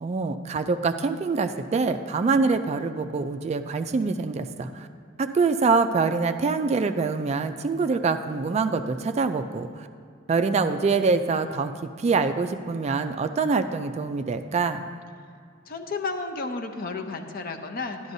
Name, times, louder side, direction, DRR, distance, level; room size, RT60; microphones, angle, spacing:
voice 1, 0.0-4.9 5.2-9.9 10.3-11.7 12.0-14.8, right 4 dB, 35° right, 8 dB, 0.3 m, -25 dB
voice 2, 15.7-18.1, left 3 dB, 45° left, 5 dB, 0.6 m, -32 dB
12.0 x 11.5 x 2.6 m, 2.2 s
head